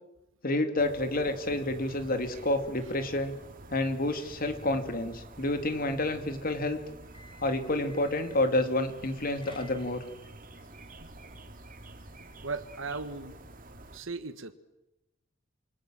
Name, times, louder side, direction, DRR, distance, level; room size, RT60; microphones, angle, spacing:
voice 1, 0.4-3.3 3.7-6.8 7.4-10.0, left 1 dB, 45° left, 8 dB, 2.9 m, -29 dB
sound 1, 0.8-14.0, right 2 dB, 45° right, 3.0 m, -49 dB
sound 2, 7.0-8.5 9.2-10.2, left 1 dB, 25° left, 3.5 m, -53 dB
voice 2, 12.4-13.4 13.9-14.5, right 3 dB, 75° right, 10 dB, 1.6 m, -37 dB
28.0 x 25.0 x 7.8 m, 0.95 s
head